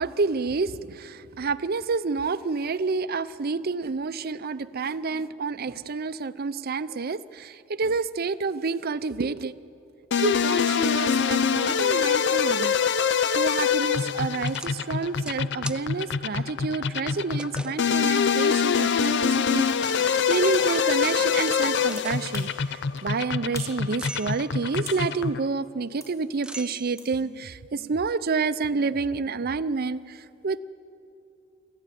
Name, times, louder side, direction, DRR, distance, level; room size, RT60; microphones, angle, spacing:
voice 1, 0.0-7.5 7.8-9.5 10.2-12.8 13.3-19.7 20.0-22.5 23.0-30.0 30.4-30.6, right 4 dB, 50° right, 14 dB, 0.6 m, -29 dB
sound 1, 10.1-25.5, left 6 dB, 60° left, 0.5 m, -25 dB
sound 2, 14.5-14.7 15.2-15.4 15.6-15.8 17.4-17.8 19.4-22.3 24.0-24.5 26.4-27.1, right 2 dB, 5° right, 0.5 m, -40 dB
sound 3, 19.7-19.8 20.5-20.7 22.0-22.6 23.0-23.1 23.5-23.8 24.2-25.1 26.0-26.2 27.0-27.1, equal, 15° left, 4.7 m, -43 dB
27.5 x 13.5 x 9.2 m, 2.7 s
head